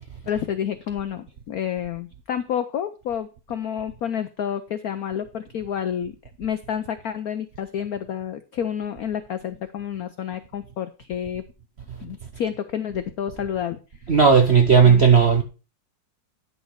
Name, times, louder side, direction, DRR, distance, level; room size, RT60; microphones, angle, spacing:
voice 1, 0.3-6.1 6.4-11.4 12.0-13.8 14.8-15.0, left 9 dB, 80° left, 0.8 m, -29 dB
voice 2, 14.1-15.4, right 6 dB, 55° right, 0.7 m, -14 dB
10.5 x 6.4 x 4.6 m
omnidirectional pair, 2.3 m